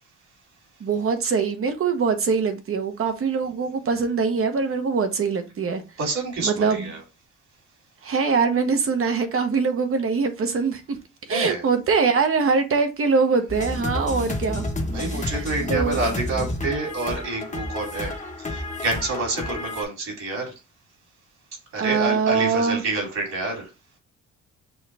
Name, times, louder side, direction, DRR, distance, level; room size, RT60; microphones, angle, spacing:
voice 1, 0.8-5.8 6.4-6.9 8.0-10.8 11.3-14.7 15.0-16.0 21.7-22.8, right 5 dB, 45° right, 1.0 m, -23 dB
voice 2, 6.0-7.0 11.3-11.6 14.9-18.1 18.4-20.5 21.7-23.7, right 3 dB, 60° right, 2.7 m, -28 dB
sound 1, 13.5-19.8, left 1 dB, 25° left, 1.0 m, -30 dB
6.3 x 2.5 x 3.3 m
cardioid pair, 90°, 30 cm